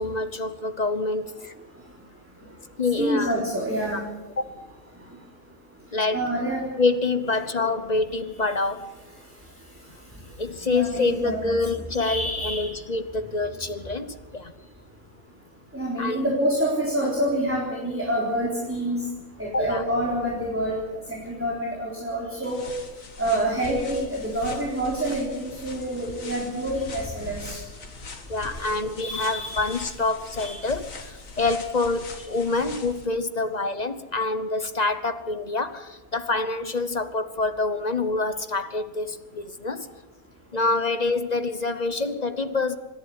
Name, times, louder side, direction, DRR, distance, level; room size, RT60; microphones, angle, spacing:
voice 1, 0.0-1.5 2.8-3.3 3.9-4.0 4.4-4.5 5.9-6.2 6.8-8.9 10.4-14.5 16.0-16.2 19.5-19.8 28.3-39.9 40.5-42.8, left 3 dB, 35° left, 11 dB, 1.0 m, -26 dB
voice 2, 3.0-4.0 6.1-6.7 10.7-11.6 12.0-12.7 15.7-19.0 19.4-20.8 21.1-22.7 23.2-27.6 28.6-28.7 29.0-29.7 30.4-30.6, right 1 dB, 10° right, -4 dB, 3.9 m, -27 dB
sound 1, 22.4-33.1, left 3 dB, 70° left, 2.3 m, -41 dB
26.0 x 11.0 x 9.4 m, 1.2 s
omnidirectional pair, 1.4 m